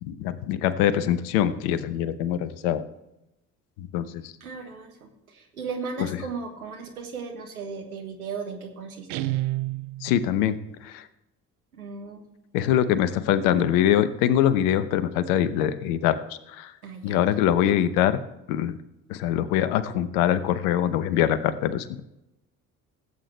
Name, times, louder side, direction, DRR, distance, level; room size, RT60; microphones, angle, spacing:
voice 1, 0.0-2.8 3.8-4.3 6.1-6.2 10.0-11.1 12.5-16.7 17.0-18.2 18.5-18.8 19.1-22.0, left 10 dB, 70° left, 13 dB, 1.0 m, -24 dB
voice 2, 4.4-9.2 11.7-12.2 16.8-17.2, right 5 dB, 90° right, 4 dB, 1.4 m, -36 dB
Guitar, 9.1-10.4, right 17 dB, 60° right, 0.6 m, -29 dB
16.5 x 8.2 x 3.3 m, 0.90 s
hypercardioid pair, 50°, 42 cm